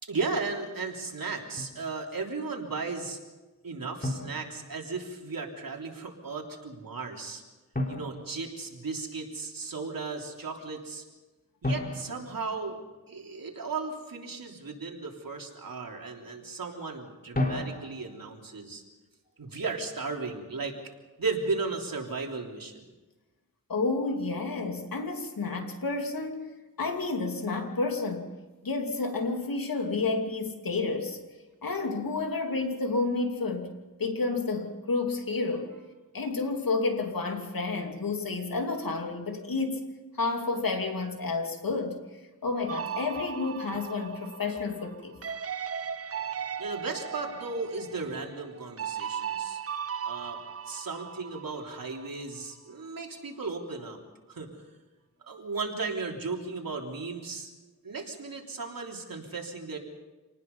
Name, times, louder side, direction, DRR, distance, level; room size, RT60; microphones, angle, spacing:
voice 1, 0.0-3.2 3.6-7.4 7.9-11.0 11.6-12.8 13.1-18.8 19.4-20.7 21.2-22.8 46.6-49.6 50.0-50.4 50.7-54.0 54.3-54.5 55.3-57.5 57.8-59.8, right 4 dB, 80° right, 1 dB, 3.5 m, -35 dB
Drum, 1.6-1.8 4.0-5.2 7.7-9.1 11.6-13.3 17.3-18.3, left 1 dB, 25° left, 3.7 m, -34 dB
voice 2, 23.7-26.5 26.8-28.3 28.6-31.2 31.6-33.7 34.0-35.7 36.1-39.8 40.1-42.0 42.4-45.2, left 3 dB, 85° left, 3 dB, 2.8 m, -30 dB
sound 1, 42.7-52.1, right 8 dB, 45° right, 0.6 m, -37 dB
27.5 x 19.5 x 5.5 m, 1.2 s
wide cardioid pair, 85°, 34 cm